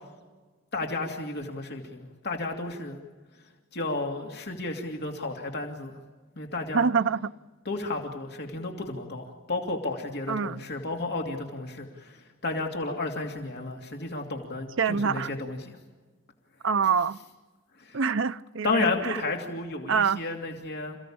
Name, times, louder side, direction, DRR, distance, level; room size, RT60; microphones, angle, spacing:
voice 1, 0.7-3.0 3.7-6.0 6.3-6.9 7.6-15.7 17.8-18.0 18.6-21.0, left 2 dB, 50° left, 2.7 m, -32 dB
voice 2, 6.7-7.3 10.3-10.6 14.8-15.3 16.6-17.2 17.9-18.7 19.0-19.2 19.9-20.2, right 6 dB, 65° right, 0.7 m, -25 dB
28.5 x 16.5 x 8.7 m
head